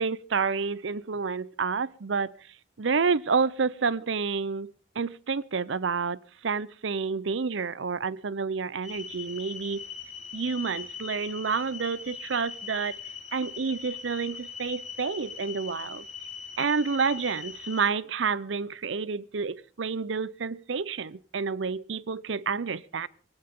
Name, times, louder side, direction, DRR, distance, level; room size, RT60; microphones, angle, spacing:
voice 1, 0.0-2.3 2.8-9.9 10.3-13.0 13.3-16.1 16.6-23.1, right 5 dB, 80° right, 0.6 m, -29 dB
sound 1, 8.8-17.8, left 6 dB, 40° left, 6.2 m, -41 dB
19.0 x 16.5 x 3.6 m
head